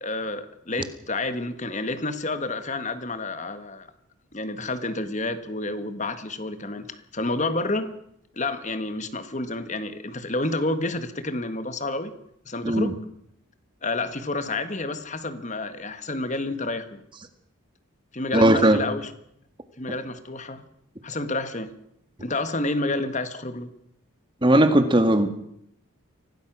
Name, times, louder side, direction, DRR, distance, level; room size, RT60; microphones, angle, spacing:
voice 1, 0.0-3.9 4.3-7.9 8.3-12.1 12.4-13.0 13.8-17.0 18.1-19.1 19.8-20.6 21.0-21.7 22.2-23.7, left 2 dB, 35° left, 10 dB, 1.6 m, -29 dB
voice 2, 18.3-18.8 24.4-25.3, right 1 dB, 20° right, 9 dB, 1.8 m, -18 dB
25.0 x 17.5 x 6.2 m, 0.74 s
head